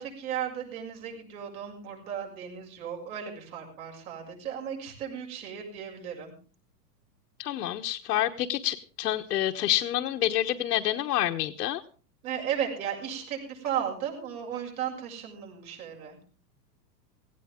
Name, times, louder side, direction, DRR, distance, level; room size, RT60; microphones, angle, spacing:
voice 1, 0.0-6.3 12.2-16.2, right 9 dB, 60° right, 0 dB, 7.1 m, -35 dB
voice 2, 7.4-11.8, left 13 dB, 85° left, 3 dB, 1.3 m, -28 dB
17.5 x 17.0 x 3.7 m, 0.38 s
supercardioid pair, 145°, 49 cm